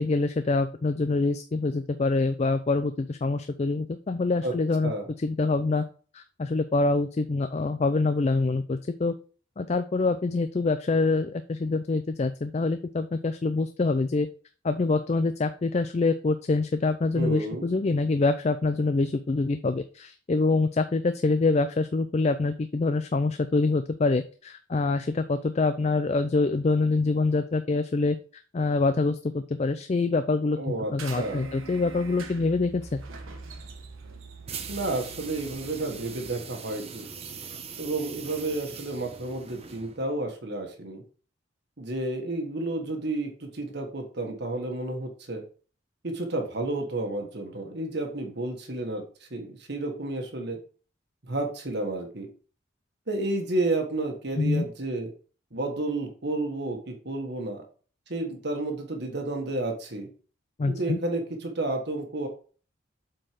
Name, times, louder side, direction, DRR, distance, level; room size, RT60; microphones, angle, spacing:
voice 1, 0.0-4.9 5.2-5.8 6.1-9.1 9.6-14.3 14.6-33.0 54.4-54.7 60.6-61.0, left 3 dB, 30° left, 10 dB, 0.4 m, -25 dB
voice 2, 17.1-17.7 30.6-31.5 34.7-37.1 37.8-41.0 41.8-45.4 46.0-50.6 51.3-52.3 53.1-55.1 55.5-57.6 58.1-60.1 60.7-62.3, right 2 dB, 55° right, 3 dB, 1.4 m, -31 dB
sound 1, 31.0-36.3, right 4 dB, 85° right, 1.2 m, -43 dB
sound 2, 34.5-40.1, right 5 dB, 30° right, 0.8 m, -41 dB
7.6 x 4.5 x 4.9 m, 0.40 s
head